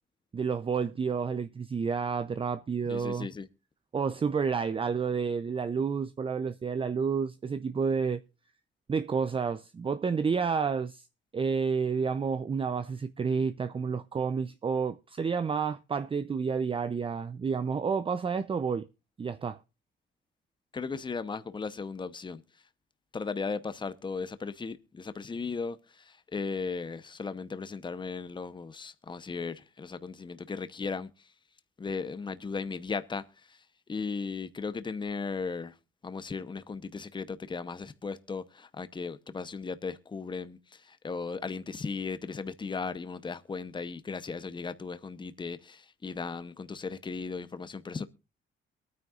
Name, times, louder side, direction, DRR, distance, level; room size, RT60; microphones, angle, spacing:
voice 1, 0.3-3.3 3.9-8.2 8.9-11.0 11.3-18.9 19.2-19.6, right 5 dB, 25° right, 0.5 m, -30 dB
voice 2, 2.9-3.5 20.7-22.4 23.1-31.1 31.8-33.2 33.5-33.6 33.9-35.7 36.0-48.1, left 4 dB, 25° left, 0.8 m, -36 dB
22.5 x 9.4 x 2.4 m
cardioid pair, 90°, 20 cm